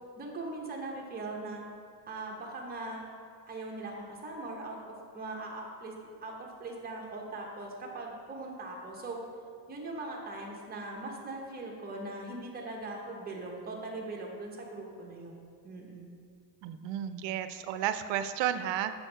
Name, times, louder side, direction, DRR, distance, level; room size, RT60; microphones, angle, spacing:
voice 1, 0.2-1.6 2.1-3.0 3.5-5.9 6.2-9.2 9.7-16.1, right 2 dB, 20° right, -1 dB, 0.9 m, -40 dB
voice 2, 16.6-18.9, right 10 dB, 65° right, 10 dB, 0.5 m, -32 dB
6.9 x 6.2 x 3.3 m, 2.2 s
cardioid pair, 120°, 47 cm